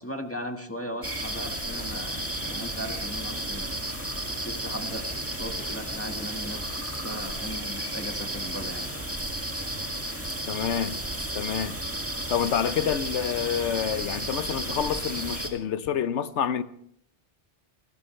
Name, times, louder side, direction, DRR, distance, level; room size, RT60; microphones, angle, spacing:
voice 1, 0.0-3.8 4.4-9.1, equal, 10° left, 1.5 m, -38 dB
sound 1, 1.0-15.5, right 1 dB, 10° right, 1.9 m, -33 dB
voice 2, 10.5-11.0 11.3-11.8 12.3-16.6, left 8 dB, 80° left, 1.1 m, -28 dB
29.0 x 14.5 x 3.2 m
omnidirectional pair, 1.2 m